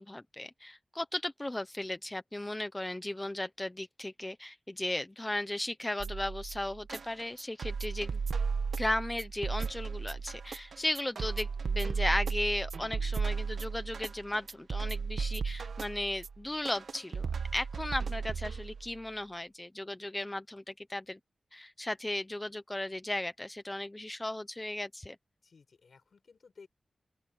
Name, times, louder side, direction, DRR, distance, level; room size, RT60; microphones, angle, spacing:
voice 1, 0.0-8.2 8.8-21.2 21.5-25.2, left 1 dB, 15° left, 0.8 m, -36 dB
sound 1, 6.0-19.0, right 5 dB, 75° right, 1.4 m, -35 dB
voice 2, 25.4-26.7, left 5 dB, 65° left, 5.7 m, -57 dB
open air
wide cardioid pair, 110°, 0 cm